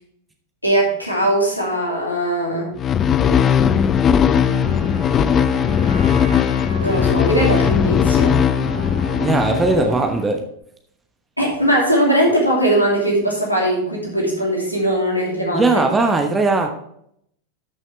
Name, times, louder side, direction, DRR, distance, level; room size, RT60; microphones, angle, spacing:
voice 1, 0.6-2.7 6.8-8.4 11.4-15.7, right 1 dB, 90° left, -2 dB, 2.7 m, -19 dB
sound 1, 2.8-10.2, left 8 dB, 25° left, 0.6 m, -18 dB
Wind instrument woodwind instrument, 4.2-10.2, right 4 dB, 80° right, 3.0 m, -34 dB
voice 2, 9.2-10.4 15.5-16.7, right 3 dB, 15° right, 4 dB, 1.1 m, -18 dB
13.0 x 6.2 x 3.3 m, 0.70 s
figure-of-eight pair, 90°, 0 cm